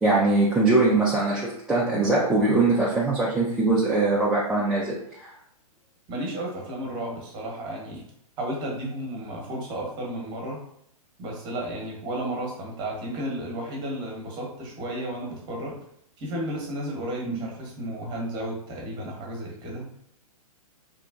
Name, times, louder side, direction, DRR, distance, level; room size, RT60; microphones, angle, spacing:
voice 1, 0.0-5.3 17.3-17.4, right 2 dB, 5° right, -7 dB, 0.3 m, -22 dB
voice 2, 6.1-8.0 8.4-10.6 11.2-15.7 16.2-19.9, right 1 dB, 25° right, -1 dB, 0.9 m, -33 dB
2.9 x 2.3 x 2.4 m, 0.70 s
hypercardioid pair, 120°, 19 cm